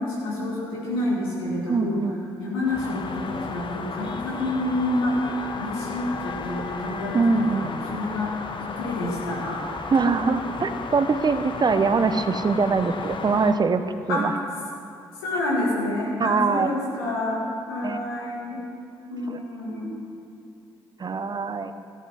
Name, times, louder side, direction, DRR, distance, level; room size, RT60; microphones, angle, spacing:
voice 1, 0.0-2.0 2.4-8.4 8.8-9.6 14.1-14.2 15.2-18.6 19.1-19.9, left 1 dB, 85° left, -5 dB, 2.0 m, -28 dB
voice 2, 1.7-2.2 7.1-7.7 9.9-13.8 14.1-14.3 16.2-16.7 17.8-18.0 19.3-19.4 21.0-21.7, right 4 dB, 35° right, 11 dB, 0.7 m, -23 dB
sound 1, 2.6-13.5, left 4 dB, 40° left, 0.9 m, -34 dB
14.0 x 7.5 x 5.7 m, 2.5 s
hypercardioid pair, 45°, 12 cm